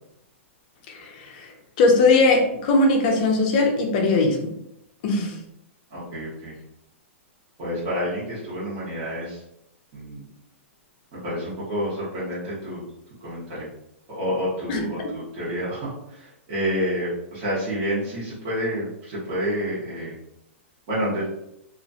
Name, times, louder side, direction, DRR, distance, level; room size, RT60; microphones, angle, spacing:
voice 1, 0.9-4.5 5.0-5.4 14.7-15.1, left 3 dB, 35° left, 3 dB, 0.5 m, -20 dB
voice 2, 5.9-6.6 7.6-9.4 9.9-10.3 11.1-12.8 13.2-13.7 14.1-20.2 20.9-21.2, equal, 35° right, -9 dB, 1.1 m, -29 dB
2.9 x 2.4 x 2.7 m, 0.81 s
hypercardioid pair, 165°, 7 cm